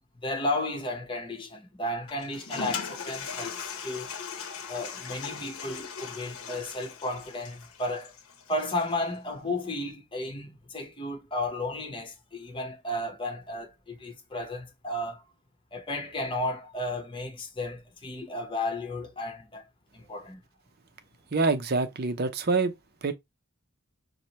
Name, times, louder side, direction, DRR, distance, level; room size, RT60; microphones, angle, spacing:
voice 1, 0.2-4.1 4.7-8.1 8.5-15.2 15.7-19.6 19.9-20.4, left 1 dB, 25° left, 1.0 m, -33 dB
Toilet flush, 2.1-9.0, left 6 dB, 85° left, 0.9 m, -39 dB
voice 2, 21.3-22.7 23.0-23.1, right 3 dB, 50° right, 0.6 m, -26 dB
4.9 x 2.2 x 4.2 m
head